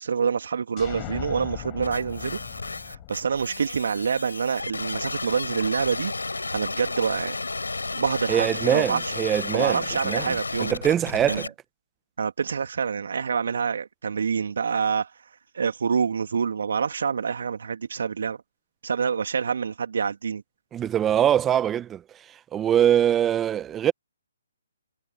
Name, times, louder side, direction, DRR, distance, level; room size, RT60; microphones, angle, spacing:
voice 1, 0.0-2.4 2.8-6.1 6.5-7.4 7.9-9.1 9.5-10.7 11.3-11.5 12.2-15.1 15.5-18.4 18.8-20.4, right 6 dB, 60° right, 2.3 m, -26 dB
sound 1, 0.8-4.5, left 33 dB, 25° left, 4.9 m, -40 dB
sound 2, 1.8-11.5, left 3 dB, 80° left, 5.4 m, -32 dB
voice 2, 8.3-11.5 20.7-22.0 22.5-23.9, right 10 dB, 15° right, 0.7 m, -23 dB
figure-of-eight pair, 140°, 0 cm